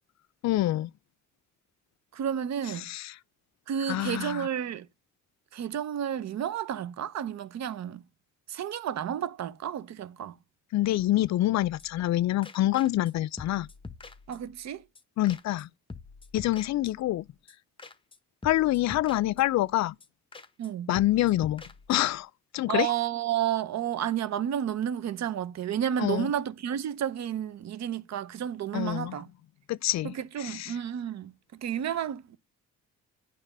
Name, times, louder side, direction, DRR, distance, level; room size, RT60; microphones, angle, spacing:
voice 1, 0.4-0.9 2.8-3.1 3.9-4.5 10.7-13.7 15.2-15.7 16.3-17.3 18.4-20.0 20.9-21.6 21.9-22.9 26.0-26.3 28.7-29.2 29.7-30.1 30.4-30.8, left 15 dB, 65° left, 0.4 m, -26 dB
voice 2, 2.1-2.9 3.7-4.9 5.5-8.0 8.5-10.3 14.3-14.8 20.6-20.9 22.7-29.3 30.0-32.4, right 9 dB, 60° right, 0.8 m, -31 dB
sound 1, 11.6-12.1 12.4-13.1 13.4-14.7 15.0-15.1 15.3-15.6 15.9-17.2 17.5-17.6 17.8-18.2 18.4-19.7 20.0-20.1 20.3-20.7 21.0-22.2, left 4 dB, 15° left, 0.8 m, -46 dB
8.9 x 3.4 x 5.3 m
cardioid pair, 90°, 30 cm